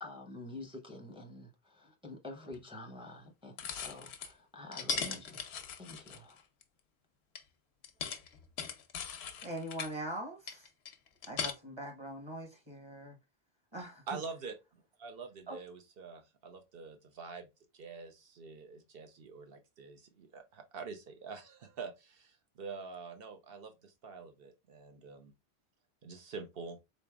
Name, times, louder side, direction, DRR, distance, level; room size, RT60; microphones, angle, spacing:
voice 1, 0.0-6.4, left 2 dB, 5° right, 0.5 m, -48 dB
sound 1, 2.5-2.6 3.6-4.3 4.7-6.6 7.3-7.4 7.8-9.9 10.5-11.5, left 6 dB, 90° left, 0.9 m, -39 dB
voice 2, 9.4-10.7 11.3-13.2 13.7-14.0 15.5-15.6, right 1 dB, 25° right, 1.1 m, -42 dB
voice 3, 14.1-14.5 15.0-17.5 17.7-25.3 26.0-26.8, right 4 dB, 65° right, 1.0 m, -46 dB
3.9 x 3.2 x 2.3 m
omnidirectional pair, 1.1 m